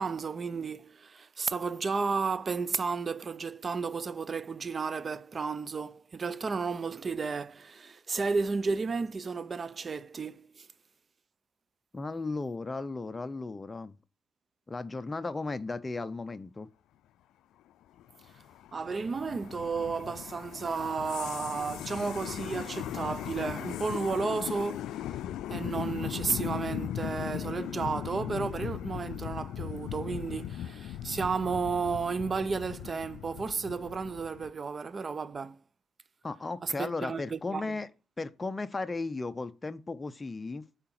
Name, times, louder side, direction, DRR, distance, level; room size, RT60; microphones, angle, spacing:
voice 1, 0.0-10.7 18.7-25.2 25.5-35.6 36.6-37.7, right 4 dB, 35° right, 0.6 m, -33 dB
voice 2, 11.9-13.9 14.7-16.7 36.2-37.9 38.2-40.6, left 3 dB, 20° left, 0.7 m, -35 dB
sound 1, 18.0-34.5, left 11 dB, 85° left, 0.4 m, -38 dB
8.8 x 4.9 x 5.9 m
cardioid pair, 90°, 0 cm